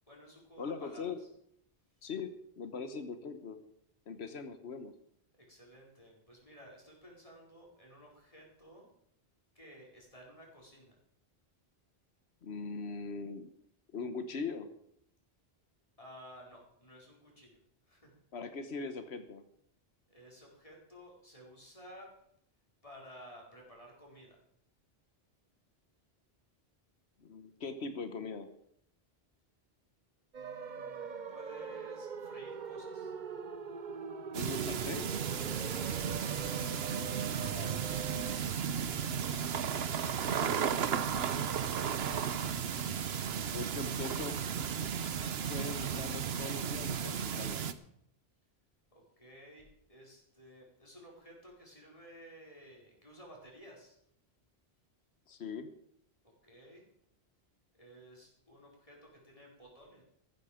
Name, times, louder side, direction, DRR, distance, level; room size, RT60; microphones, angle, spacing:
voice 1, 0.1-1.3 5.4-8.9 9.5-11.0 16.0-17.6 17.9-18.1 20.1-22.1 22.8-24.4 30.3-33.1 36.2-36.4 39.6-40.5 48.9-54.0 56.4-56.8 57.8-60.0, equal, 35° left, -2 dB, 4.6 m, -55 dB
voice 2, 0.6-1.2 2.0-2.3 2.6-3.6 4.1-4.9 12.4-13.5 13.9-14.7 18.3-19.4 27.2-28.5 34.3-35.1 37.5-37.9 43.5-44.4 45.5-47.6 55.3-55.7, left 4 dB, 90° left, 9 dB, 1.4 m, -41 dB
sound 1, 30.3-38.4, right 6 dB, 50° right, 1.0 m, -43 dB
sound 2, 34.3-47.7, right 7 dB, 75° right, 1.1 m, -34 dB
14.5 x 12.5 x 5.0 m, 0.71 s
omnidirectional pair, 1.1 m